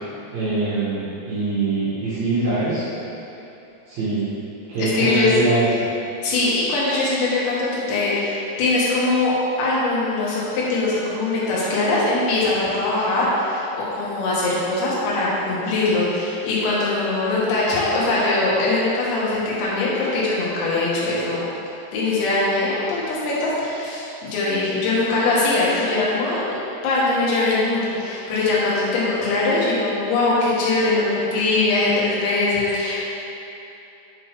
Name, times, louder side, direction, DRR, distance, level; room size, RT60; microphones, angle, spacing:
voice 1, 0.3-2.8 3.9-4.3 4.7-5.7, right 3 dB, 65° right, -10 dB, 1.9 m, -23 dB
voice 2, 4.8-5.3 6.2-21.4 21.9-26.4 26.8-33.1, left 2 dB, 85° left, -7 dB, 3.5 m, -21 dB
9.3 x 3.9 x 3.5 m, 2.9 s
omnidirectional pair, 5.0 m